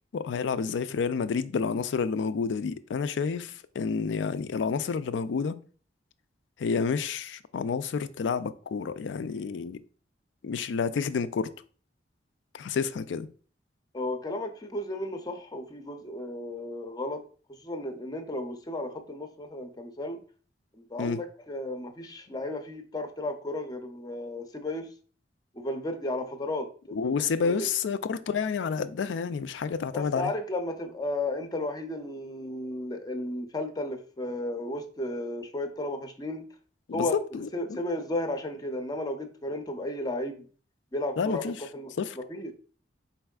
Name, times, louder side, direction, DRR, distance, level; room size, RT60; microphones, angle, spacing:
voice 1, 0.1-5.6 6.6-9.8 10.4-11.5 12.5-13.3 21.0-21.2 26.9-30.3 36.9-37.8 41.2-41.6 42.0-42.2, left 5 dB, 85° left, 0.4 m, -29 dB
voice 2, 13.9-17.2 17.5-20.2 20.7-24.9 25.5-27.1 27.4-27.7 29.9-36.5 36.9-37.2 37.5-40.4 40.9-41.9 42.3-42.5, left 1 dB, 20° left, 0.5 m, -34 dB
4.4 x 4.1 x 2.3 m
head